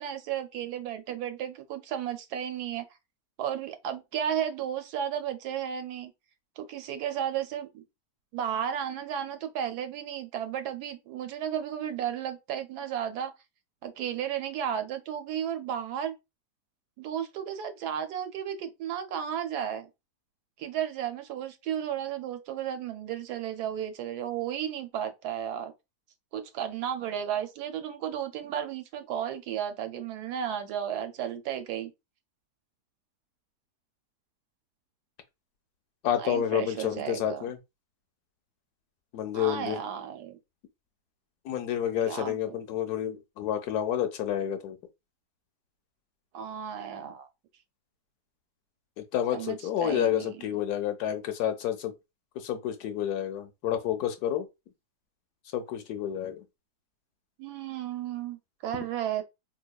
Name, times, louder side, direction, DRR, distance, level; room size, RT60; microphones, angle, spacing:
voice 1, 0.0-2.8 3.4-6.1 6.6-7.8 8.3-13.3 13.8-16.1 17.0-19.9 20.6-25.7 26.3-31.9 36.2-37.5 39.3-40.4 42.0-42.6 46.3-47.3 49.3-50.4 57.4-59.2, right 9 dB, 75° right, 1.1 m, -33 dB
voice 2, 36.0-37.6 39.1-39.8 41.4-44.8 49.0-51.9 52.4-54.5 55.5-56.4, left 10 dB, 75° left, 1.1 m, -29 dB
3.9 x 2.8 x 2.2 m
omnidirectional pair, 1.8 m